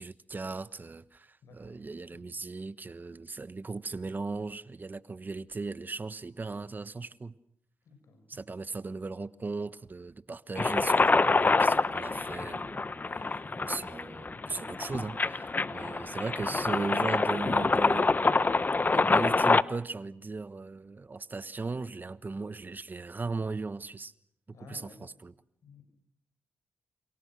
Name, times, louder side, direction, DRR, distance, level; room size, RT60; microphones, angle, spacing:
voice 1, 0.0-7.3 8.3-12.9 13.1-18.3 18.9-24.1 24.7-25.3, right 3 dB, 35° right, 1.2 m, -37 dB
voice 2, 1.4-1.9 2.1-2.4 7.9-8.6 15.6-16.0 24.5-25.1 25.6-25.8, left 4 dB, 75° left, 7.1 m, -54 dB
sound 1, 10.5-19.6, left 3 dB, 35° left, 1.2 m, -26 dB
29.5 x 27.5 x 6.4 m
supercardioid pair, 50°, 5 cm